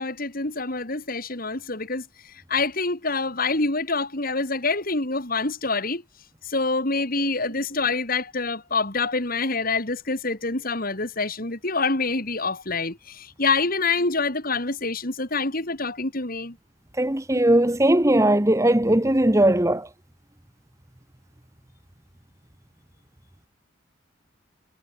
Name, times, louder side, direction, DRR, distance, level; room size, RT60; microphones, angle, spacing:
voice 1, 0.0-2.0 2.5-6.0 6.4-16.6, left 3 dB, 45° left, 3.2 m, -26 dB
voice 2, 17.0-19.9, right 1 dB, 15° right, 1.2 m, -19 dB
head